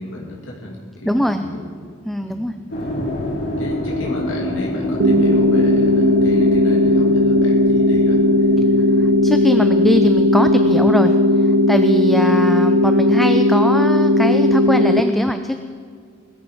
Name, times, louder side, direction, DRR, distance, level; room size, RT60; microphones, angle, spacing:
voice 1, 0.0-1.6 2.2-2.5 3.6-8.5, left 1 dB, 90° left, -3 dB, 2.9 m, -33 dB
voice 2, 1.1-1.5 2.0-2.6 9.0-15.6, equal, ahead, 8 dB, 0.5 m, -21 dB
sound 1, 2.7-10.3, left 1 dB, 60° left, 4.4 m, -27 dB
sound 2, 5.0-15.0, left 1 dB, 65° right, 0.7 m, -15 dB
21.0 x 13.0 x 4.8 m, 2.1 s
head